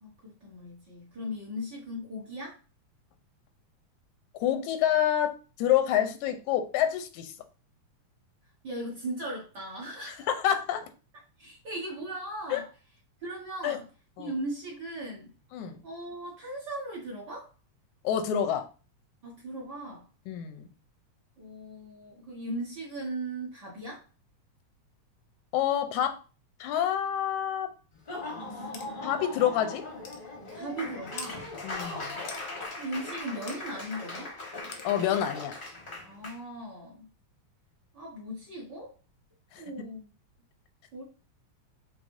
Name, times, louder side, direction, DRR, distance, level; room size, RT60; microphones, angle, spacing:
voice 1, 0.0-2.6 8.6-10.3 11.4-12.7 13.2-13.9 14.2-15.3 15.8-17.5 19.2-20.1 21.4-24.0 30.5-31.5 32.8-34.3 36.0-37.1 37.9-38.9 39.6-40.1 40.9-41.0, right 1 dB, 50° right, 1.5 m, -38 dB
voice 2, 4.4-7.3 10.3-10.9 12.5-12.6 13.6-13.8 14.2-14.3 15.5-15.8 18.0-18.7 20.3-20.7 25.5-26.2 26.6-27.7 29.0-29.8 31.6-32.2 34.8-35.5 39.5-39.6, left 10 dB, 90° left, 2.0 m, -27 dB
Laughter / Applause, 27.9-36.4, left 2 dB, 55° left, 0.5 m, -39 dB
sound 1, 28.7-28.9 29.4-29.5 30.0-30.2 31.2-31.3 32.3-32.5 33.5-33.6 34.7-34.9, left 5 dB, 70° left, 1.2 m, -41 dB
6.3 x 3.2 x 2.6 m
omnidirectional pair, 3.3 m